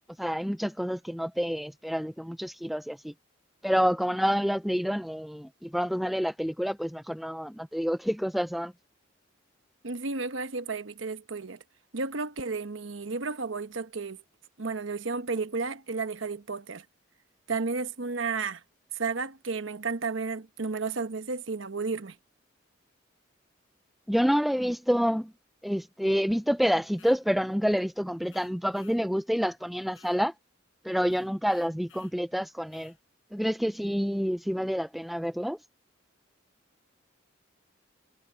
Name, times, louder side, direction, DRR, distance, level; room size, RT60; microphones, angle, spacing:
voice 1, 0.2-3.1 3.6-8.7 24.1-25.3 25.6-30.3 30.8-32.9 33.3-35.6, equal, ahead, 0.4 m, -28 dB
voice 2, 9.8-11.6 11.9-14.2 14.6-16.8 17.5-18.6 18.9-22.2, right 4 dB, 80° right, 1.1 m, -32 dB
sound 1, 26.9-27.2 28.3-29.0 29.9-30.2 31.0-32.2 32.7-33.0, left 9 dB, 80° left, 5.2 m, -58 dB
head